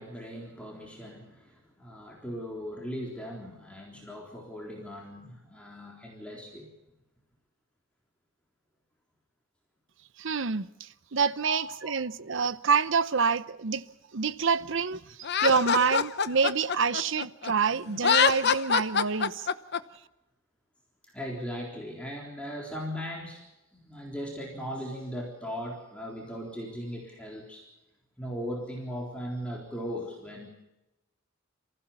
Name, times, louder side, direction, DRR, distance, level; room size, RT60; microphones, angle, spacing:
voice 1, 0.0-6.7 11.5-11.6 11.8-12.0 21.1-23.4 23.7-27.6 28.2-30.5, equal, 5° left, 3.8 m, -38 dB
voice 2, 10.2-13.8 14.1-15.2 15.4-19.5, right 5 dB, 65° right, 0.8 m, -27 dB
Laughter, 15.2-17.5 17.9-19.8, left 7 dB, 55° left, 0.9 m, -25 dB
27.5 x 15.5 x 7.1 m
head